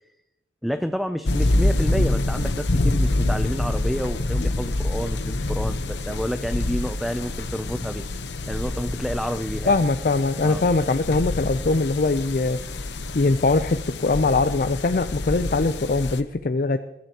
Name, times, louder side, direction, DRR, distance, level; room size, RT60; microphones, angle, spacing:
voice 1, 0.6-8.0 8.5-9.8 10.4-10.6, equal, ahead, 8 dB, 0.4 m, -29 dB
sound 1, 1.2-16.2, left 2 dB, 85° left, 0.9 m, -26 dB
voice 2, 9.7-12.6 13.1-16.8, left 3 dB, 50° left, 9 dB, 0.5 m, -22 dB
22.5 x 13.5 x 2.9 m, 0.91 s
head